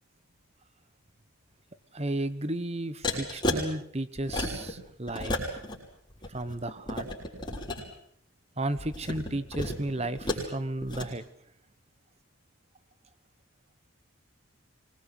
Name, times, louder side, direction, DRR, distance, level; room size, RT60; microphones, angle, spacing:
voice 1, 1.9-5.4 6.3-7.1 8.6-11.2, right 1 dB, 30° right, 13 dB, 1.1 m, -33 dB
sound 1, 3.0-3.6 4.2-4.7 5.1-5.8 6.1-7.8 8.8-10.5 10.8-11.1, left 2 dB, 20° left, 6.1 m, -32 dB
25.5 x 21.0 x 8.3 m, 0.67 s
head